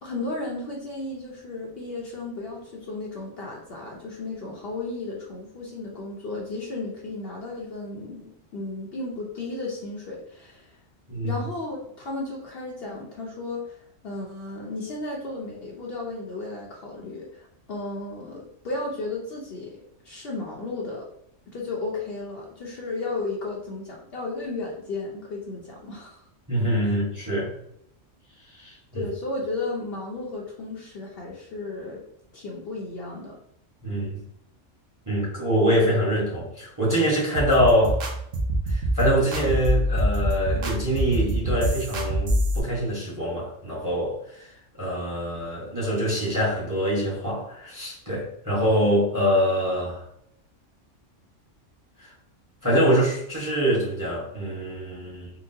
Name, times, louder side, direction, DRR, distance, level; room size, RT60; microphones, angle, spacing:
voice 1, 0.0-10.8 11.2-19.7 20.0-21.1 21.5-26.3 26.8-26.9 28.9-32.0 32.3-33.3, left 2 dB, 60° left, -2 dB, 0.8 m, -34 dB
voice 2, 11.1-11.4 26.5-27.5 28.6-29.0 33.8-34.2 35.1-38.0 38.7-44.5 44.8-50.0 52.0-52.1 52.6-55.3, equal, 15° right, -6 dB, 1.0 m, -24 dB
sound 1, 37.3-42.6, equal, 55° right, 0.7 m, -25 dB
3.9 x 2.1 x 2.6 m, 0.72 s
omnidirectional pair, 1.3 m